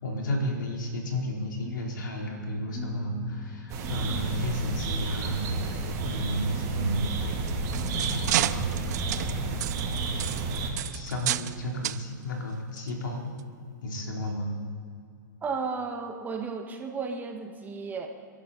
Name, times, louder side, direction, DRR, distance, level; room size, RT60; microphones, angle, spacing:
voice 1, 0.0-7.1 7.9-8.7 10.9-13.3 13.8-14.5, left 1 dB, 80° left, 0 dB, 4.0 m, -33 dB
sound 1, 1.6-11.8, equal, 5° left, 1.7 m, -45 dB
sound 2, 3.7-10.7, right 3 dB, 35° right, 3.1 m, -31 dB
sound 3, 7.3-11.6 11.8-12.0 12.8-12.9 13.4-13.5, right 14 dB, 60° right, 0.6 m, -31 dB
voice 2, 15.4-18.1, right 4 dB, 15° right, 3 dB, 1.6 m, -33 dB
29.5 x 11.5 x 4.2 m, 2.3 s
hypercardioid pair, 125°, 10 cm